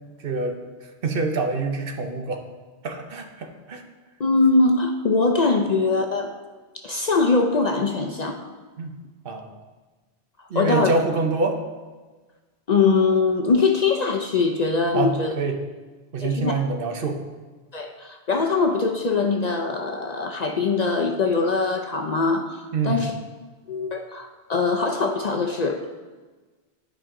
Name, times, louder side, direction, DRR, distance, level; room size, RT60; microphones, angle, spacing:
voice 1, 0.2-0.6 1.0-2.4 2.8-3.8 8.8-9.0 9.2-9.5 10.5-11.6 14.9-15.6 16.1-17.2 22.7-23.1, right 3 dB, 60° right, 4 dB, 0.9 m, -25 dB
voice 2, 4.2-6.3 6.8-8.4 10.5-10.9 12.7-15.3 16.2-16.6 17.7-23.1 23.7-25.8, left 4 dB, 50° left, 3 dB, 0.6 m, -22 dB
10.5 x 5.2 x 3.7 m, 1.3 s
omnidirectional pair, 1.1 m